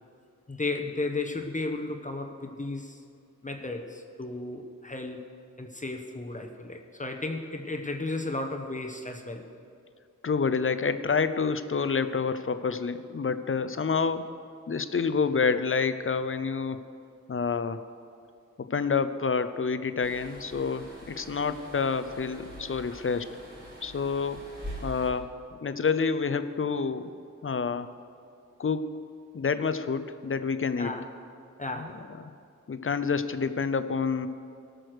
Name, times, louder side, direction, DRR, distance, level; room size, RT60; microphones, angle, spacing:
voice 1, 0.5-3.0 3.4-5.2 5.6-9.4 30.8-31.1 31.6-32.0, left 2 dB, 25° left, 4 dB, 0.9 m, -34 dB
voice 2, 10.2-14.3 14.7-16.8 17.3-17.9 18.6-23.3 23.8-24.4 24.8-25.3 25.6-27.2 27.4-27.9 28.6-29.0 29.3-30.9 31.8-31.9 32.7-34.3, left 5 dB, 45° left, 12 dB, 0.6 m, -28 dB
sound 1, 20.0-25.1, equal, 40° right, 3.5 m, -44 dB
18.0 x 6.4 x 6.5 m, 2.4 s
wide cardioid pair, 90°, 30 cm